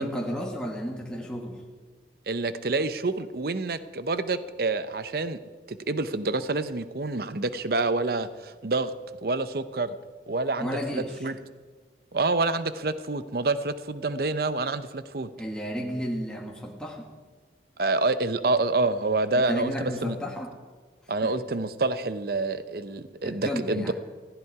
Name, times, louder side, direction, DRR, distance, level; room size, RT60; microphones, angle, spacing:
voice 1, 0.0-1.6 10.6-11.3 15.4-17.1 19.3-20.5 21.2-21.3 23.2-23.9, equal, 5° left, -1 dB, 1.6 m, -32 dB
voice 2, 2.3-5.4 5.7-8.9 9.2-10.0 10.3-11.4 12.1-15.3 17.8-20.2 21.1-23.9, right 3 dB, 55° right, 12 dB, 0.7 m, -27 dB
19.0 x 15.0 x 4.8 m, 1.4 s
head